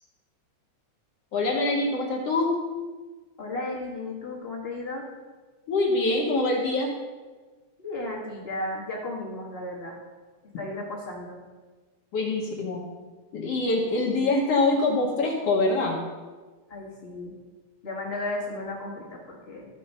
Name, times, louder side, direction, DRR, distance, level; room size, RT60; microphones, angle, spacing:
voice 1, 1.3-2.5 5.7-6.9 12.1-12.8 13.3-16.0, left 2 dB, 65° left, -1 dB, 1.9 m, -24 dB
voice 2, 3.4-5.0 7.8-10.0 10.6-11.4 16.7-17.3 17.8-19.7, left 2 dB, 35° left, -3 dB, 1.0 m, -34 dB
13.0 x 4.6 x 5.4 m, 1.3 s
omnidirectional pair, 3.4 m